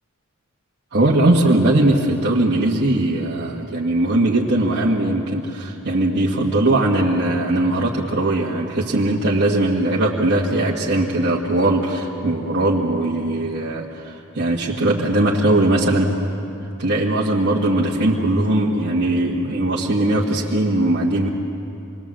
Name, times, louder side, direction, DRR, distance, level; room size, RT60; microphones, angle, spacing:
voice 1, 0.9-16.1 16.8-21.3, right 1 dB, 50° right, -6 dB, 1.7 m, -19 dB
27.0 x 21.5 x 7.6 m, 2.9 s
head